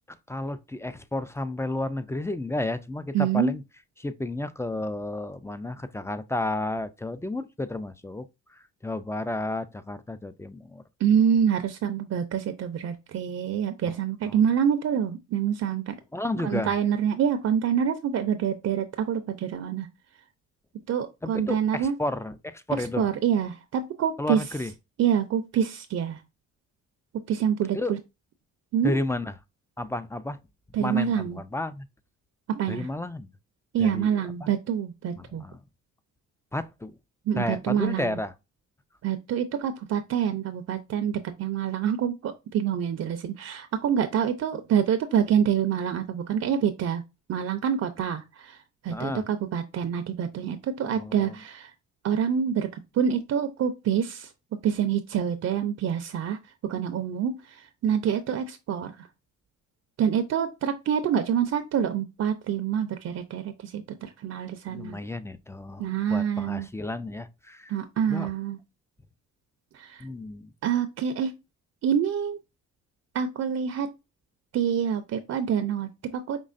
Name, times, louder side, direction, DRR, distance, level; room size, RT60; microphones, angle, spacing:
voice 1, 0.3-3.6 4.0-10.8 13.9-14.0 14.2-14.4 16.1-16.8 21.2-23.1 24.2-24.7 27.7-27.9 28.8-29.3 29.8-30.4 30.8-31.9 32.7-33.3 33.8-34.5 35.2-35.6 36.5-36.9 37.4-38.3 48.9-49.3 50.9-51.4 64.7-67.8 68.1-68.3 70.0-70.5, left 2 dB, 10° left, 0.4 m, -32 dB
voice 2, 3.1-3.5 11.0-15.9 16.4-19.9 20.9-21.9 23.0-24.4 25.0-26.2 27.3-28.0 28.7-28.9 30.7-31.4 32.5-32.9 33.7-35.4 37.3-38.2 39.0-47.0 47.3-48.6 48.8-51.7 52.0-52.7 53.0-54.3 54.6-56.4 56.7-57.3 57.8-58.9 60.0-63.4 63.7-65.0 65.8-66.7 67.7-68.6 69.7-70.0 70.6-71.3 71.8-72.4 73.1-73.9 74.5-76.4, right 8 dB, 55° right, 0.6 m, -26 dB
5.3 x 3.1 x 2.5 m
cardioid pair, 90°, 30 cm